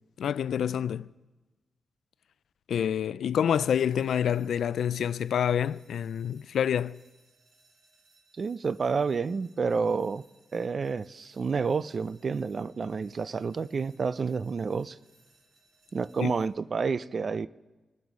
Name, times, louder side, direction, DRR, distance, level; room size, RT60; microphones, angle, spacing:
voice 1, 0.2-1.1 2.7-7.0 16.2-16.3, left 9 dB, 80° left, 0.3 m, -27 dB
sound 1, 3.6-16.4, right 3 dB, 65° right, 3.9 m, -65 dB
voice 2, 8.4-10.2 10.5-15.0 15.9-17.5, right 5 dB, 40° right, 0.3 m, -29 dB
23.0 x 8.1 x 4.8 m
wide cardioid pair, 160°, 0 cm